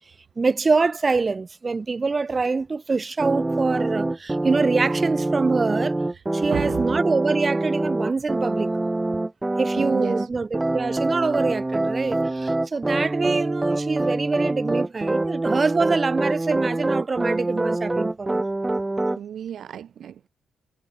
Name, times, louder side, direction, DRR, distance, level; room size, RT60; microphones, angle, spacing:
voice 1, 0.4-6.0 6.3-8.7 9.6-18.4, right 4 dB, 35° right, 2.7 m, -25 dB
sound 1, 3.2-10.3 10.5-19.2, right 2 dB, 20° right, 1.6 m, -25 dB
voice 2, 6.4-7.0 9.8-10.3 19.2-20.3, right 9 dB, 70° right, 1.4 m, -33 dB
supercardioid pair, 60°, 0 cm